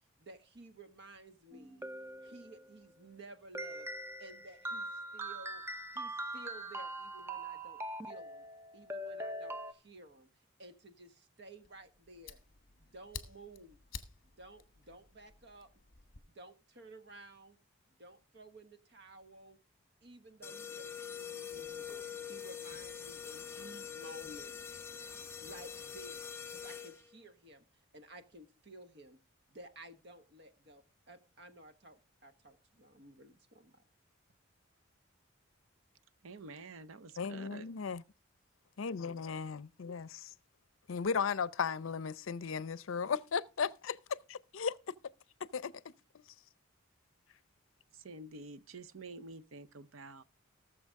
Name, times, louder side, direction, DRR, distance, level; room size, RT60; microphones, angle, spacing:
voice 1, 0.2-1.9 2.2-3.9 4.2-5.6 5.9-8.4 8.7-10.3 10.6-12.4 12.8-13.8 14.2-15.7 16.3-17.6 17.9-19.6 20.0-24.7 25.4-26.2 26.5-29.2 29.5-33.8, right 1 dB, 55° right, 1.2 m, -54 dB
sound 1, 1.5-2.8 3.5-9.7, right 1 dB, 10° right, 0.6 m, -42 dB
Fire, 11.6-16.2, left 5 dB, 45° left, 1.1 m, -51 dB
sound 2, 20.4-27.2, left 7 dB, 10° left, 0.9 m, -44 dB
voice 2, 36.2-37.7 47.9-50.2, right 3 dB, 85° right, 0.7 m, -49 dB
voice 3, 37.2-38.0 38.8-40.3 40.9-44.0 44.3-44.7 45.5-45.7, left 6 dB, 75° left, 0.5 m, -36 dB
18.5 x 7.0 x 3.6 m
head